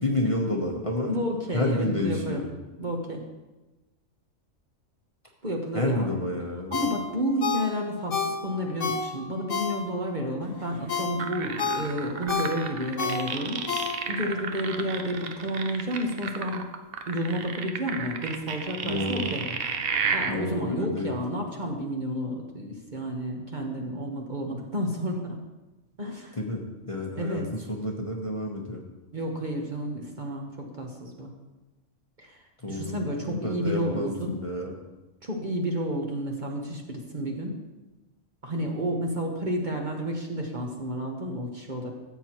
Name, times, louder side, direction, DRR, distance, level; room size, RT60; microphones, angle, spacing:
voice 1, 0.0-1.2 1.5-2.5 5.7-6.8 18.8-19.4 20.3-21.2 26.4-28.8 32.6-32.9 33.2-34.7, left 1 dB, 30° left, -1 dB, 0.9 m, -29 dB
voice 2, 1.1-2.5 2.8-3.2 5.4-6.1 6.7-16.7 17.1-19.4 19.9-25.4 26.0-26.4 27.1-27.5 29.1-31.3 32.2-32.4 32.7-34.4 35.2-37.6 38.4-41.9, equal, 40° right, 1 dB, 1.1 m, -31 dB
Ringtone, 6.7-10.2 10.6-14.3 14.7-14.8, left 5 dB, 65° left, 1.3 m, -31 dB
sound 1, 11.2-20.3, right 6 dB, 55° right, 0.8 m, -32 dB
13.5 x 7.8 x 3.0 m, 1.1 s
omnidirectional pair, 1.4 m